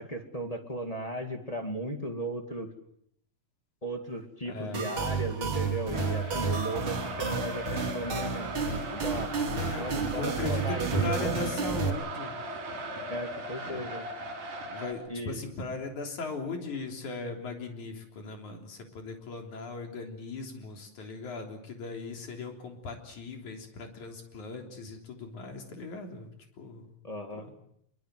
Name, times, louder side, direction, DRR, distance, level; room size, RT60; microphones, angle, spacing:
voice 1, 0.0-2.7 3.8-8.5 8.9-9.3 9.8-11.5 13.1-14.1 15.1-15.4 27.0-27.5, right 1 dB, 15° left, 5 dB, 1.8 m, -36 dB
voice 2, 4.4-4.9 9.3-9.8 10.1-12.3 13.6-13.8 14.7-26.3 26.6-26.9 27.4-27.5, left 3 dB, 60° left, 3 dB, 4.8 m, -38 dB
sound 1, 4.7-11.9, right 5 dB, 40° right, 3.3 m, -31 dB
sound 2, 5.9-14.9, equal, 60° right, 5.3 m, -38 dB
25.0 x 23.0 x 7.7 m, 0.71 s
omnidirectional pair, 4.0 m